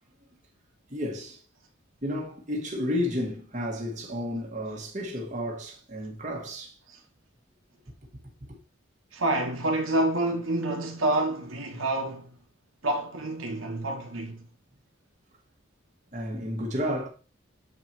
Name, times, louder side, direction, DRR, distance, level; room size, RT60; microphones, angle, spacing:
voice 1, 0.9-1.4 2.0-6.8 8.1-8.2 8.5-8.6 16.1-17.1, left 1 dB, 35° right, 1.8 m, -32 dB
voice 2, 9.1-12.4 12.8-14.5, right 1 dB, 80° right, 1.6 m, -28 dB
7.7 x 4.8 x 4.4 m
head